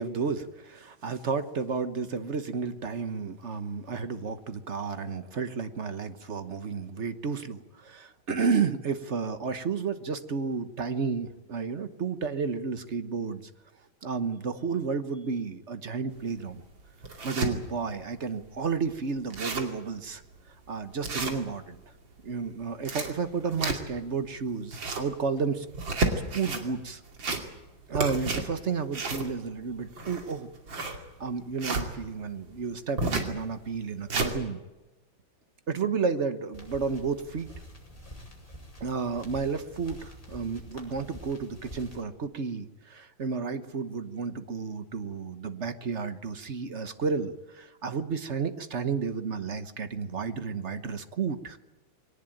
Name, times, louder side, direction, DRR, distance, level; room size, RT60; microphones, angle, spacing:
voice 1, 0.0-13.5 14.0-16.6 17.2-20.2 20.7-21.8 22.2-25.7 26.3-27.0 27.9-30.5 30.9-34.6 35.7-37.5 38.8-51.6, right 5 dB, 40° right, 11 dB, 1.2 m, -32 dB
sound 1, 16.2-16.3 16.8-17.5 18.1-18.2 18.4-18.5 18.9-19.0 19.2-19.8 20.2-20.4 21.0-21.8 22.6-24.1 24.5-25.1 25.7-26.6 27.1-27.7 27.9-31.9 33.0-33.3 33.8-34.3, right 3 dB, 65° right, 3.3 m, -31 dB
sound 2, 36.5-42.0, equal, 15° left, 5.3 m, -47 dB
22.5 x 18.5 x 9.0 m, 1.1 s
omnidirectional pair, 2.2 m